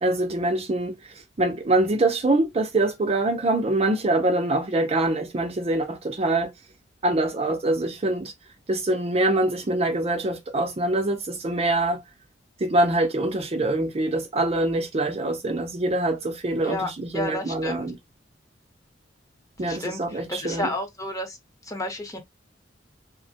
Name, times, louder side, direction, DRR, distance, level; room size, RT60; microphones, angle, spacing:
voice 1, 0.0-1.0 1.4-6.5 7.0-8.3 8.7-12.0 12.6-18.0 19.6-20.7, right 2 dB, 35° right, 0.5 m, -24 dB
voice 2, 16.6-17.9 19.6-21.4 21.6-22.2, left 1 dB, 20° left, 0.9 m, -31 dB
3.2 x 2.1 x 2.7 m
head